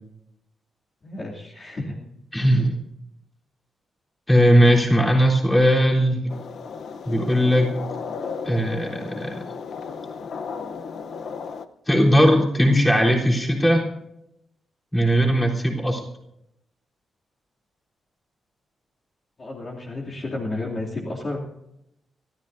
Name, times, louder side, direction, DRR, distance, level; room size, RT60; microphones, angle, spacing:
voice 1, 1.0-2.0 2.5-2.7 19.4-21.4, left 2 dB, 40° left, -4 dB, 2.7 m, -32 dB
voice 2, 2.3-2.7 4.3-6.3 7.1-7.8 8.4-9.4 11.9-13.9 14.9-16.0, equal, 10° left, -2 dB, 3.6 m, -18 dB
sound 1, 6.3-11.7, left 5 dB, 60° left, 0.8 m, -34 dB
27.0 x 13.5 x 2.7 m, 0.82 s
cardioid pair, 120°, 0 cm